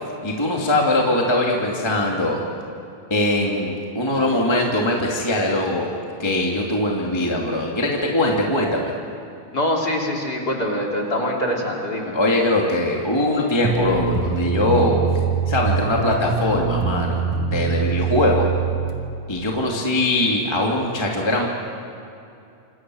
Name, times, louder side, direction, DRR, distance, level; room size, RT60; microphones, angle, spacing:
voice 1, 0.2-2.4 3.1-5.9 6.2-8.9 12.1-14.9 15.5-18.4 19.3-21.5, left 1 dB, 10° left, -1 dB, 2.2 m, -21 dB
voice 2, 9.5-12.2, left 1 dB, 30° left, -1 dB, 3.7 m, -24 dB
sound 1, 13.6-19.0, right 6 dB, 85° right, 3.3 m, -23 dB
27.5 x 27.5 x 6.4 m, 2.6 s
omnidirectional pair, 3.4 m